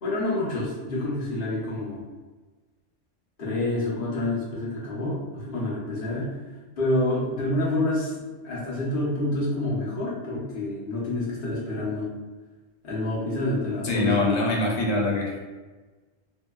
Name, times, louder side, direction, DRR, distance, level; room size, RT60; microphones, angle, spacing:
voice 1, 0.0-2.0 3.4-6.3 6.8-8.1 8.4-12.1 12.8-14.7, left 1 dB, 50° left, -6 dB, 0.9 m, -28 dB
voice 2, 13.8-15.4, left 2 dB, 90° left, -1 dB, 1.0 m, -24 dB
3.0 x 2.1 x 2.2 m, 1.3 s
omnidirectional pair, 1.3 m